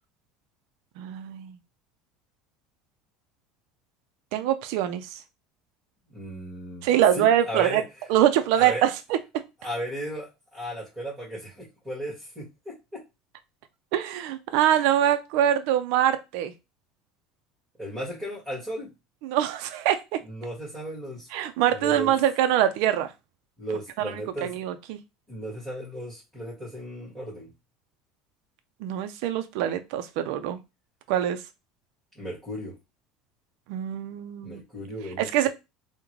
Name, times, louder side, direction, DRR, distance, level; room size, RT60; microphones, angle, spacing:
voice 1, 1.0-1.5 4.3-5.2 6.8-7.8 8.1-8.9 13.9-16.5 19.2-20.2 21.3-23.1 24.0-24.1 24.4-25.0 28.8-30.6 31.1-31.4 33.7-34.6 35.2-35.5, right 11 dB, 70° right, 0.4 m, -24 dB
voice 2, 6.1-6.9 7.1-7.8 8.5-8.8 9.6-13.0 17.8-18.9 20.2-21.3 21.7-22.1 23.6-24.6 25.3-27.5 32.1-32.7 34.4-35.5, right 1 dB, 10° right, 1.6 m, -35 dB
3.6 x 2.1 x 3.1 m
supercardioid pair, 130°, 0 cm